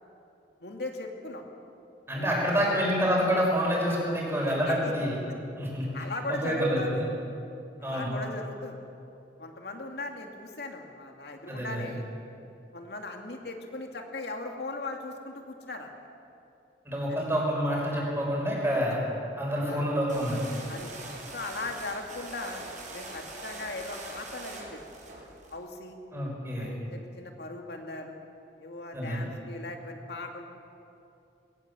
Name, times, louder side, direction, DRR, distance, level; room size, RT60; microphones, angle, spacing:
voice 1, 0.6-1.4 2.1-2.8 4.5-4.9 5.9-7.1 7.8-8.8 9.4-12.0 12.7-15.9 17.1-17.2 18.7-18.8 19.7-19.9 20.7-20.9 21.3-22.6 22.9-24.8 25.5-26.0 26.6-28.2 28.6-30.4, left 2 dB, 65° left, 3 dB, 2.4 m, -38 dB
voice 2, 2.1-5.1 5.6-5.9 6.3-7.1 7.8-8.1 11.5-11.9 16.8-19.0 19.4-20.5 26.1-26.7 28.9-29.3, equal, 15° right, -3 dB, 6.0 m, -27 dB
sound 1, 20.1-25.6, right 2 dB, 45° right, 5.4 m, -43 dB
21.5 x 18.5 x 7.4 m, 2.7 s
head